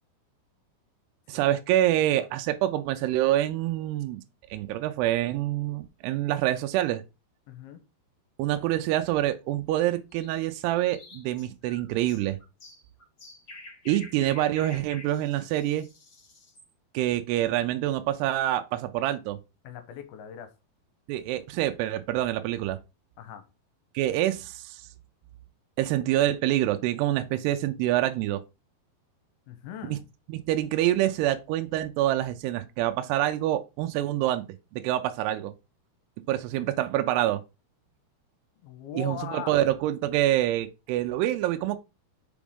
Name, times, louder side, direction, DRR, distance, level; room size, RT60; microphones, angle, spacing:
voice 1, 1.3-4.2 4.5-7.0 8.4-12.4 13.9-15.9 16.9-19.4 21.1-22.8 24.0-24.8 25.8-28.4 29.9-30.0 30.3-34.5 34.7-35.5 36.3-37.4 38.9-41.8, right 13 dB, 80° right, 2.6 m, -26 dB
voice 2, 7.5-7.8 19.6-20.5 23.2-23.4 29.5-30.1 38.6-39.6, left 8 dB, 75° left, 2.5 m, -40 dB
sound 1, 10.1-16.7, left 2 dB, 40° left, 1.9 m, -48 dB
6.1 x 5.0 x 3.5 m
omnidirectional pair, 4.8 m